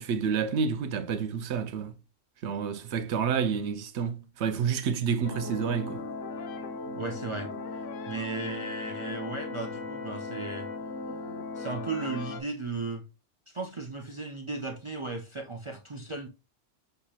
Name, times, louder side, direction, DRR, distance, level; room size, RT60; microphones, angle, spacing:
voice 1, 0.0-1.9 2.4-6.0, right 6 dB, 70° right, 0.8 m, -29 dB
sound 1, 5.2-12.4, left 3 dB, 85° left, 1.0 m, -37 dB
voice 2, 6.9-7.5 8.1-10.7 11.5-13.0 13.5-16.3, right 3 dB, 50° right, 0.3 m, -35 dB
6.7 x 2.9 x 2.3 m
omnidirectional pair, 1.3 m